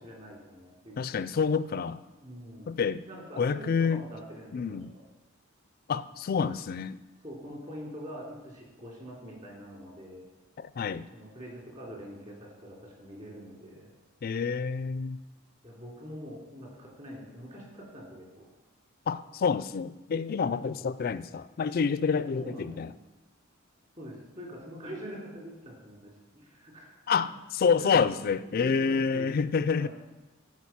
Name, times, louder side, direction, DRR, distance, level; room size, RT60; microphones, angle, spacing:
voice 1, 0.0-1.4 2.2-2.8 3.1-5.0 7.2-10.2 11.1-13.9 15.6-18.4 20.7-20.9 22.3-23.0 24.0-27.2 27.8-29.5 29.7-29.9, equal, 35° right, 3.2 m, -44 dB
voice 2, 1.0-2.0 2.7-3.0 3.4-4.0 4.5-4.9 5.9-7.0 10.6-11.1 14.2-15.2 19.1-22.9 27.1-27.3 27.6-29.9, left 5 dB, 45° left, 0.3 m, -28 dB
14.0 x 4.7 x 5.8 m
head